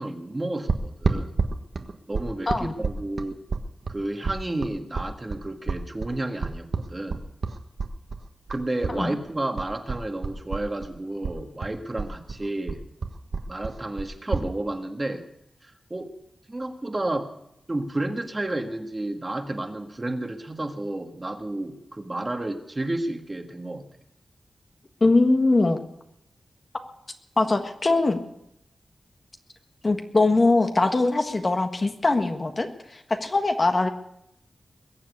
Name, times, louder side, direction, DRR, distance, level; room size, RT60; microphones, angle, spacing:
voice 1, 0.0-1.4 2.1-3.3 3.9-7.2 8.5-12.8 13.5-15.2 15.6-16.1 16.5-17.3 17.7-23.9, right 2 dB, 25° right, 5 dB, 1.7 m, -31 dB
sound 1, 0.7-9.0 9.2-10.9 11.2-14.5, right 4 dB, 65° right, 1.4 m, -29 dB
voice 2, 25.0-25.8 27.4-28.2 29.8-33.9, left 2 dB, 40° left, 6 dB, 1.6 m, -22 dB
21.5 x 7.6 x 8.4 m, 0.79 s
wide cardioid pair, 90°, 0 cm